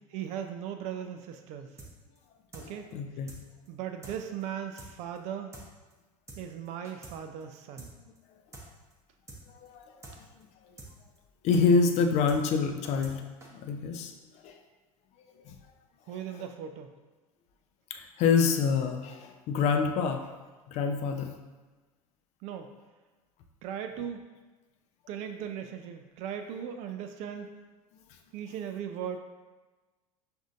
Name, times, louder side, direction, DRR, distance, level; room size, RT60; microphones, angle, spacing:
voice 1, 0.1-1.7 2.5-2.9 3.7-5.5 6.4-7.9 16.1-16.9 22.4-22.7 23.6-24.2 25.1-27.6 28.3-29.2, right 8 dB, 40° right, 6 dB, 0.3 m, -38 dB
sound 1, 1.8-1.9 2.2-2.3 2.5-2.7 2.9-3.0 3.3-3.4 3.7-3.8 4.0-4.2 4.4-4.5 4.8-4.9 5.2-5.3 5.5-5.7 5.9-6.0 6.3-6.4 6.7-7.2 7.4-7.5 7.8-7.9 8.2-8.3 8.5-8.7 8.9-9.0 9.3-9.4 9.7-9.8 10.0-10.2 10.4-10.5 10.8-10.9 11.2-11.3 11.5-11.7 11.9-12.0 12.3-12.4 12.7-13.2 13.4-13.5, right 3 dB, 15° right, 0.7 m, -46 dB
voice 2, 2.6-3.3 9.6-10.7 11.4-14.6 15.5-15.6 17.9-20.3 20.7-21.4, left 5 dB, 35° left, 5 dB, 0.4 m, -27 dB
6.0 x 2.6 x 2.5 m, 1.3 s
figure-of-eight pair, 75°, 19 cm